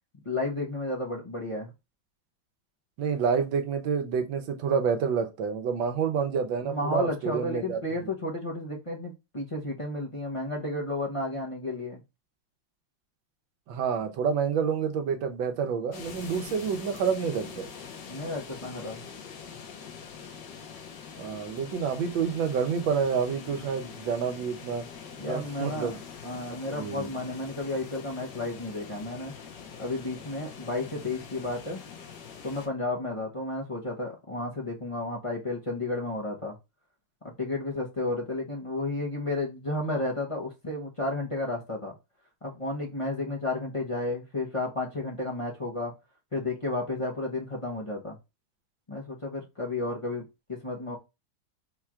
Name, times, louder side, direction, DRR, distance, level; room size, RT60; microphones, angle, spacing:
voice 1, 0.2-1.7 6.6-12.0 18.1-19.1 25.2-25.9 26.2-29.3 29.8-31.8 32.4-36.6 37.2-41.9 42.4-45.9 46.3-48.2 48.9-51.0, left 2 dB, 50° left, 0.3 m, -32 dB
voice 2, 3.0-7.8 13.7-17.7 21.2-24.8 25.2-26.0 26.7-27.1, right 6 dB, 90° right, 1.5 m, -28 dB
sound 1, 15.9-32.7, left 6 dB, 70° left, 1.5 m, -44 dB
4.4 x 2.4 x 4.4 m
omnidirectional pair, 2.0 m